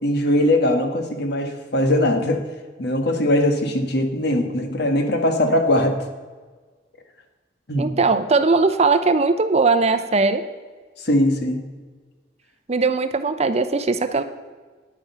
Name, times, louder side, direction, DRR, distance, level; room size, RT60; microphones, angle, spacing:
voice 1, 0.0-2.4 2.8-5.9 7.7-8.0 11.0-11.6, left 1 dB, 60° left, 6 dB, 1.4 m, -20 dB
voice 2, 7.8-10.4 12.7-14.2, right 3 dB, 35° right, 10 dB, 0.6 m, -19 dB
10.0 x 8.7 x 5.6 m, 1.4 s
head